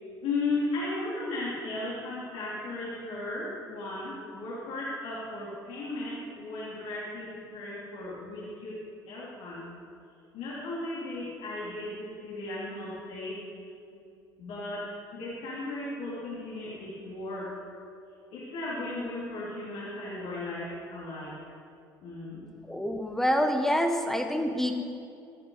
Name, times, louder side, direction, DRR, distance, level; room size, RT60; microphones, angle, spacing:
voice 1, 0.2-8.8 9.0-9.7 10.3-13.4 13.9-14.0 14.4-17.6 18.3-21.3 22.0-22.4, left 2 dB, 60° left, -8 dB, 3.5 m, -36 dB
voice 2, 22.7-24.7, equal, 5° left, 4 dB, 1.5 m, -26 dB
13.5 x 13.5 x 4.1 m, 2.6 s
figure-of-eight pair, 60°, 12 cm